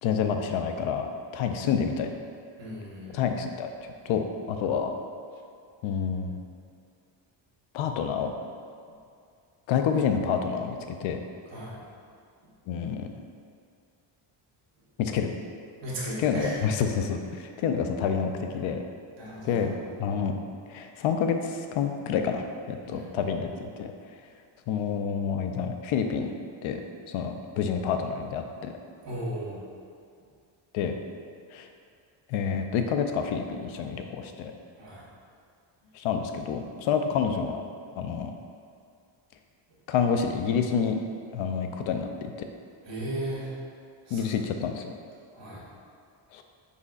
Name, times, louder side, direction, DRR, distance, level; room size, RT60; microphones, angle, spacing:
voice 1, 0.0-1.1 1.3-2.1 3.1-3.7 4.1-4.9 5.8-6.4 7.7-8.3 9.7-11.2 12.7-13.1 15.0-15.3 16.2-18.8 19.4-20.3 20.7-23.9 24.7-26.3 26.6-26.8 27.1-28.7 30.7-31.0 31.5-31.7 32.3-34.5 35.9-37.6 37.9-38.3 39.9-41.0 41.3-42.3 44.1-44.9 46.3-46.4, left 7 dB, 80° left, 6 dB, 0.5 m, -28 dB
voice 2, 2.6-3.2 11.5-11.8 15.8-16.6 19.2-19.7 22.8-23.1 29.0-29.6 34.8-35.0 42.8-43.5 44.1-44.2 45.3-45.6, right 1 dB, 65° right, -7 dB, 1.4 m, -35 dB
4.9 x 4.1 x 2.4 m, 2.3 s
cardioid pair, 105°, 47 cm